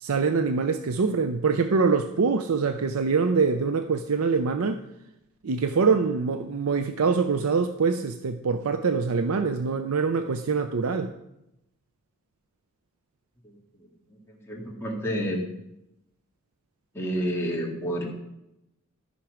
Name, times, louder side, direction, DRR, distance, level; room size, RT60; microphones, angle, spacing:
voice 1, 0.0-4.8 5.4-11.1, right 5 dB, 85° right, 0.5 m, -24 dB
voice 2, 13.4-15.4 16.9-18.0, equal, 10° left, 2.1 m, -30 dB
13.5 x 5.9 x 5.0 m
head